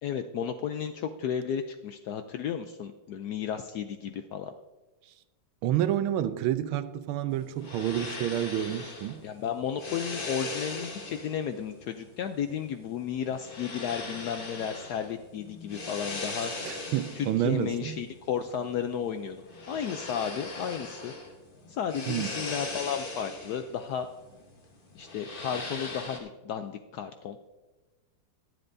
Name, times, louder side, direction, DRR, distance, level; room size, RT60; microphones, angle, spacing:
voice 1, 0.0-4.5 9.2-16.5 17.1-21.1 21.7-24.1 24.9-27.4, left 8 dB, 80° left, 0.8 m, -33 dB
voice 2, 5.6-9.2 16.6-18.0 22.1-22.3, right 11 dB, 90° right, 1.5 m, -29 dB
sound 1, 7.3-26.2, left 2 dB, 30° left, 1.1 m, -40 dB
22.0 x 7.8 x 2.6 m
omnidirectional pair, 2.3 m